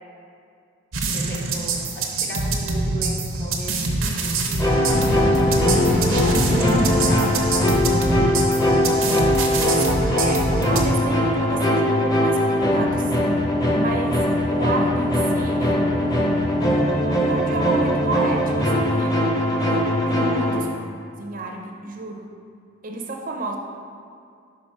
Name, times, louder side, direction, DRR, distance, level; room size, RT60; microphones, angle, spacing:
sound 1, 0.9-10.9, right 3 dB, 85° right, 0.8 m, -25 dB
voice 1, 1.0-5.2 5.9-7.8 20.3-20.6, left 1 dB, 45° left, -2 dB, 1.1 m, -35 dB
sound 2, 4.6-20.6, left 1 dB, 15° left, 0.8 m, -21 dB
sound 3, 4.9-8.9, left 1 dB, 75° left, 1.3 m, -25 dB
voice 2, 8.8-14.2 14.5-16.5 17.3-19.2 19.6-22.3 22.8-23.6, right 2 dB, 40° right, 1 dB, 0.6 m, -32 dB
5.4 x 4.7 x 5.4 m, 2.4 s
head